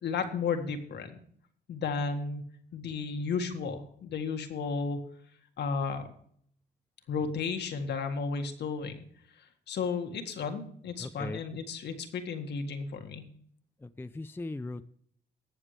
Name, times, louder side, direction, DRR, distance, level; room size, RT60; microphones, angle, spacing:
voice 1, 0.0-1.2 1.7-2.4 2.7-5.0 5.6-6.1 7.1-9.0 9.7-13.3, left 5 dB, 70° left, 6 dB, 1.7 m, -33 dB
voice 2, 11.0-11.4 13.8-14.8, left 2 dB, 10° left, 10 dB, 0.5 m, -39 dB
19.5 x 7.2 x 3.3 m, 0.62 s
cardioid pair, 100°, 18 cm